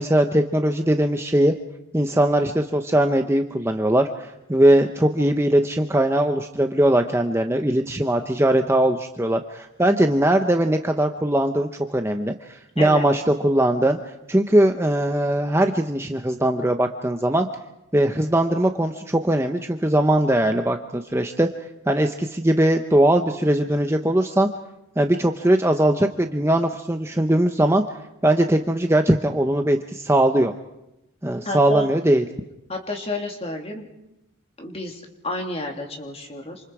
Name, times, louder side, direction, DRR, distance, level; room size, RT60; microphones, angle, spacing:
voice 1, 0.0-1.5 1.9-14.0 14.3-17.5 17.9-21.5 21.9-24.5 25.0-27.8 28.2-30.5 31.2-32.2, right 1 dB, 10° right, 5 dB, 0.8 m, -20 dB
voice 2, 31.4-31.9 32.7-33.9 34.6-36.6, left 1 dB, 25° left, 2 dB, 3.1 m, -30 dB
28.0 x 27.0 x 4.9 m, 0.90 s
head